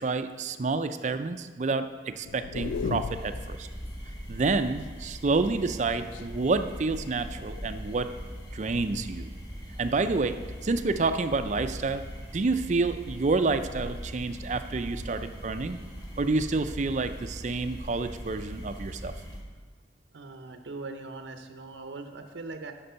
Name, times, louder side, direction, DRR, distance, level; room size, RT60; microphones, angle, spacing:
voice 1, 0.0-3.7 4.3-8.1 8.5-9.3 9.8-10.4 10.6-12.0 12.3-15.8 16.2-19.1, right 3 dB, 40° right, 10 dB, 0.4 m, -28 dB
sound 1, 2.2-3.5 5.4-6.4 7.2-7.7, left 5 dB, 85° left, 0.3 m, -36 dB
sound 2, 2.5-19.4, equal, 20° left, 1.8 m, -40 dB
voice 2, 20.1-22.7, right 3 dB, 80° right, 6 dB, 0.7 m, -40 dB
8.0 x 6.1 x 5.6 m, 1.4 s
head